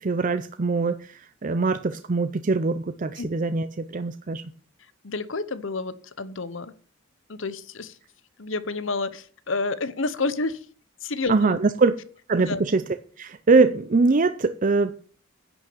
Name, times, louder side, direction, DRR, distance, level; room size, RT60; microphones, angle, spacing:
voice 1, 0.0-4.4 11.3-11.9 12.3-12.8 13.2-15.0, right 3 dB, 40° right, 11 dB, 0.5 m, -22 dB
voice 2, 5.0-6.7 7.3-8.0 8.4-10.7 11.0-11.6 12.4-12.6, left 3 dB, 70° left, 15 dB, 1.0 m, -29 dB
10.5 x 6.2 x 8.6 m, 0.43 s
head